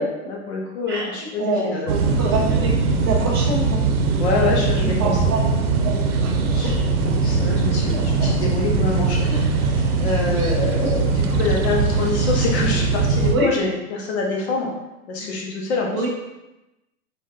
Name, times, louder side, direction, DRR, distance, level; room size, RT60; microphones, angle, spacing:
voice 1, 0.0-1.9 4.2-5.2 6.4-6.7 7.2-9.5 9.7-14.7 15.1-16.1, left 3 dB, 50° left, -1 dB, 1.1 m, -26 dB
voice 2, 1.4-2.7 3.0-3.9 4.8-5.4 5.8-6.8 7.0-7.1 7.9-8.3 9.2-9.4 10.8-10.9 13.3-13.5 15.2-15.3 15.9-16.1, right 2 dB, 20° right, -6 dB, 0.3 m, -26 dB
sound 1, 1.9-13.4, right 4 dB, 85° right, 0.7 m, -21 dB
4.0 x 2.7 x 3.8 m, 0.98 s
hypercardioid pair, 160°, 43 cm